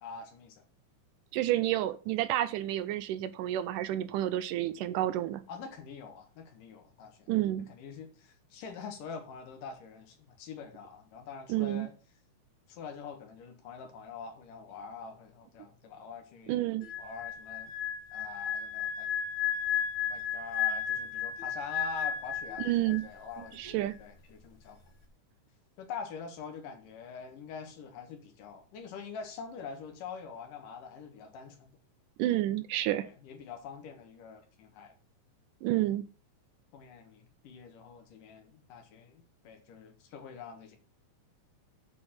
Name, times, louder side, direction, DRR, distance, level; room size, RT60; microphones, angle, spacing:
voice 1, 0.0-0.6 5.5-7.3 7.6-11.9 12.7-16.6 17.0-17.7 18.1-19.1 20.1-24.8 25.8-31.8 33.0-34.9 36.7-40.8, left 5 dB, 85° left, 3.1 m, -45 dB
voice 2, 1.3-5.4 7.3-7.7 11.5-11.9 16.5-16.9 22.6-23.1 23.6-24.0 32.2-33.1 35.6-36.0, right 14 dB, 85° right, 2.2 m, -30 dB
sound 1, 16.8-23.2 23.4-23.7, left 9 dB, 30° left, 1.7 m, -33 dB
8.2 x 4.9 x 7.1 m
omnidirectional pair, 3.7 m